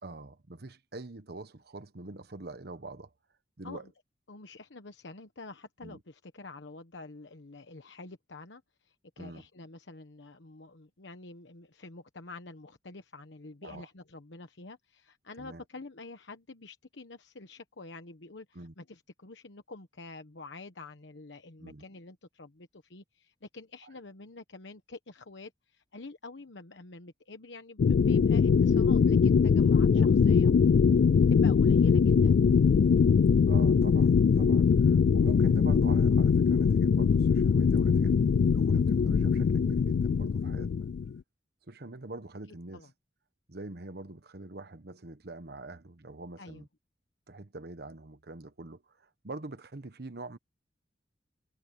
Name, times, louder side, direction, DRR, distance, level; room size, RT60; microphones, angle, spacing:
voice 1, 0.0-3.1 3.6-3.8 5.8-6.0 9.2-9.4 13.6-13.9 15.4-15.6 18.5-18.7 21.6-21.9 29.9-30.1 33.5-40.9 41.7-42.8 43.5-46.7 47.3-50.4, right 2 dB, 60° right, 1.2 m, -44 dB
voice 2, 4.3-30.5 31.3-32.4 42.7-42.9 46.4-46.7, left 3 dB, 80° left, 1.2 m, -47 dB
sound 1, 27.8-41.1, left 6 dB, 65° left, 0.3 m, -22 dB
head